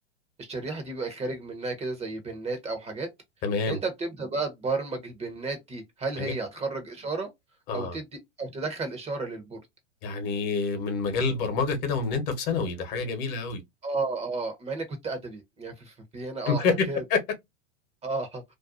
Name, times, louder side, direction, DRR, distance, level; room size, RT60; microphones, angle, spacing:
voice 1, 0.4-3.1 3.7-7.3 7.7-8.0 8.4-9.6 13.8-17.0 18.0-18.4, right 3 dB, 20° right, 0.7 m, -33 dB
voice 2, 3.4-3.8 6.2-6.3 7.7-8.0 10.0-13.6 16.5-16.7 17.1-17.2, left 4 dB, 45° left, 1.0 m, -27 dB
2.5 x 2.2 x 2.3 m
hypercardioid pair, 95°, 34 cm